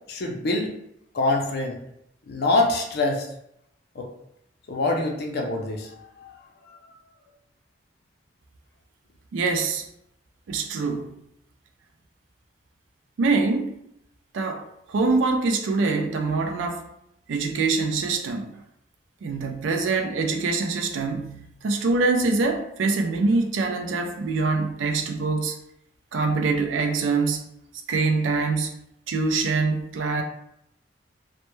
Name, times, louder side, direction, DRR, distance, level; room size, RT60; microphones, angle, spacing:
voice 1, 0.1-0.7 1.1-1.8 2.3-3.3 4.0-4.1 4.7-5.9 6.2-6.3, left 2 dB, 60° left, 0.4 m, -24 dB
voice 2, 9.3-9.9 10.5-11.1 13.2-13.8 14.3-16.9 17.3-18.5 19.2-25.5 26.1-27.4 27.9-28.7 29.1-30.2, right 3 dB, 90° right, 0.4 m, -24 dB
2.1 x 2.1 x 3.0 m
head